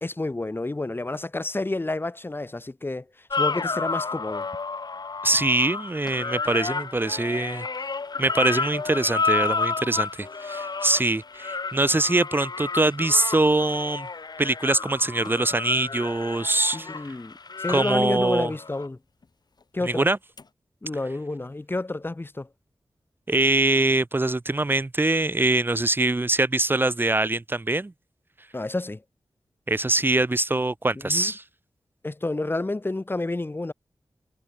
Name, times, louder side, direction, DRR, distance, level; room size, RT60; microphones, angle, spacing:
voice 1, 0.0-3.0 3.4-4.5 16.7-19.0 19.7-20.1 20.8-22.5 28.5-29.0 31.0-31.3 32.0-33.7, left 2 dB, 25° left, 2.4 m, -29 dB
sound 1, 3.3-18.9 20.4-20.5, left 4 dB, 55° left, 4.3 m, -31 dB
voice 2, 5.2-7.7 8.2-14.1 14.4-16.9 17.7-18.5 19.8-20.2 23.3-27.9 29.7-31.4, right 2 dB, 25° right, 1.4 m, -23 dB
wide cardioid pair, 115°, 8 cm